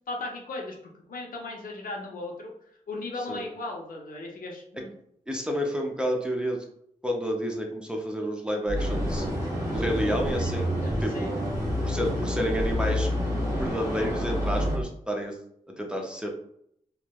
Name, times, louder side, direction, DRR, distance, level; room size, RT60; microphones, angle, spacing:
voice 1, 0.1-0.8 1.1-2.5 2.9-4.9 10.8-11.3, left 2 dB, 85° left, 0 dB, 0.6 m, -36 dB
voice 2, 5.3-6.6 7.0-9.3 9.7-10.8 11.0-11.3 11.8-13.1 13.6-15.4 15.8-16.3, equal, 5° right, 0 dB, 0.4 m, -30 dB
sound 1, 8.7-14.8, equal, 25° right, 0.8 m, -32 dB
sound 2, 8.7-9.3 9.7-14.8, left 1 dB, 90° right, 0.9 m, -30 dB
3.1 x 2.1 x 2.2 m, 0.71 s
wide cardioid pair, 115°, 14 cm